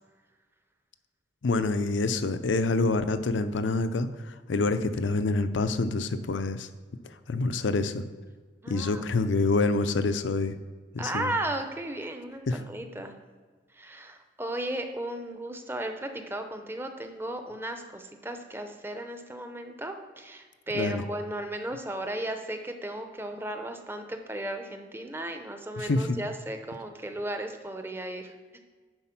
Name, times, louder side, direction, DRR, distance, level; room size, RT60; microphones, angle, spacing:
voice 1, 1.4-6.7 7.3-8.0 8.7-10.6 10.9-11.3 12.5-12.6 20.7-21.0 25.8-26.2, left 3 dB, 85° left, 11 dB, 0.6 m, -27 dB
voice 2, 8.6-9.0 11.0-13.1 13.7-28.6, right 1 dB, 10° right, 6 dB, 0.7 m, -35 dB
9.8 x 4.2 x 5.9 m, 1.5 s
head